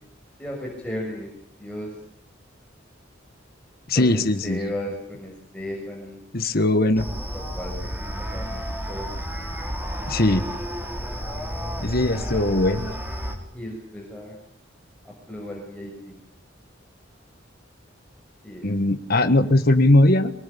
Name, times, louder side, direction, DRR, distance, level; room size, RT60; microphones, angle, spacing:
voice 1, 0.4-1.3 1.6-1.9 3.9-6.2 7.0-8.6 8.9-9.1 12.5-12.6 13.5-14.3 15.0-16.1 18.4-18.7, left 1 dB, 5° left, -2 dB, 6.4 m, -35 dB
voice 2, 3.9-4.7 6.3-7.0 10.1-10.5 11.8-12.9 18.6-20.3, left 1 dB, 50° left, 8 dB, 1.6 m, -20 dB
sound 1, 7.0-13.4, equal, 10° right, 4.4 m, -31 dB
24.5 x 20.0 x 8.6 m, 0.62 s
head